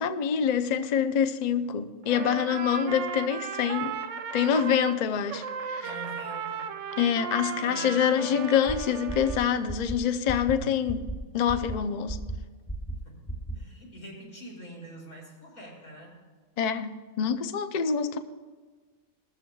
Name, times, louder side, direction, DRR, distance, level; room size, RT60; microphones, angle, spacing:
voice 1, 0.0-4.0 4.3-5.9 7.0-11.1 11.3-12.2 16.6-18.2, left 8 dB, 60° left, 0.4 m, -26 dB
Trumpet, 2.0-5.0 5.3-9.4, right 7 dB, 65° right, 0.9 m, -35 dB
voice 2, 5.8-6.7 7.4-8.4 10.2-10.8 13.0-13.2 13.5-16.1, right 1 dB, 85° left, 5.4 m, -45 dB
sound 1, 8.7-8.8 9.1-9.4 9.7-9.9 10.3-10.5 10.9-11.1 11.5-11.7 12.1-12.3 12.7-12.9 13.3-13.5, right 1 dB, 15° left, 0.9 m, -33 dB
20.0 x 14.0 x 2.3 m
omnidirectional pair, 1.4 m